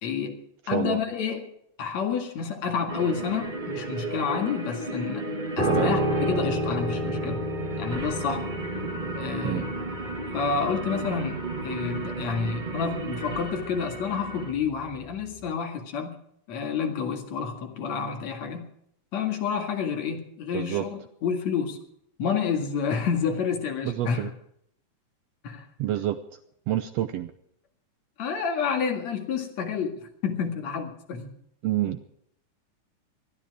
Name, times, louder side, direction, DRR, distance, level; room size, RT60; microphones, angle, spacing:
voice 1, 0.0-0.4 0.7-1.5 1.8-5.3 5.6-7.5 7.8-8.5 9.2-9.7 10.3-16.2 16.5-18.6 19.1-21.8 22.2-24.3 25.4-25.7 28.2-31.3, left 6 dB, 65° left, 5 dB, 3.1 m, -29 dB
sound 1, 2.9-14.5, right 2 dB, 50° right, 0.5 m, -34 dB
Piano, 5.6-14.9 15.2-15.5, right 1 dB, 15° right, 3.2 m, -31 dB
voice 2, 20.5-20.8 23.8-24.3 25.8-26.2 26.7-27.3 31.6-32.1, right 13 dB, 70° right, 11 dB, 1.7 m, -27 dB
21.0 x 13.0 x 4.8 m, 0.71 s
omnidirectional pair, 3.5 m